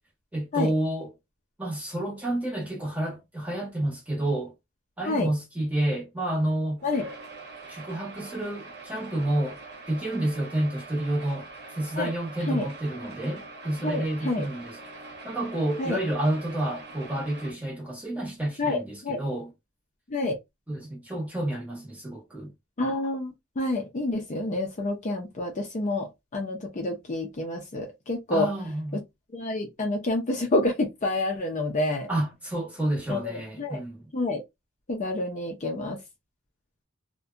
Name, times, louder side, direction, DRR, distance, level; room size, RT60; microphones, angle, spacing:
voice 1, 0.3-1.1 1.6-4.5 5.0-6.8 7.7-9.6 9.9-11.5 11.8-14.8 15.2-19.5 20.7-22.5 28.3-29.0 32.1-34.0, right 1 dB, 5° right, 0.9 m, -29 dB
sound 1, 6.8-17.5, right 3 dB, 50° right, 0.9 m, -44 dB
voice 2, 13.8-14.4 15.8-16.0 18.6-19.2 20.1-20.4 22.8-28.5 29.3-32.1 33.1-33.8 34.1-34.4 34.9-36.0, left 2 dB, 35° left, 0.5 m, -28 dB
2.6 x 2.1 x 2.3 m
head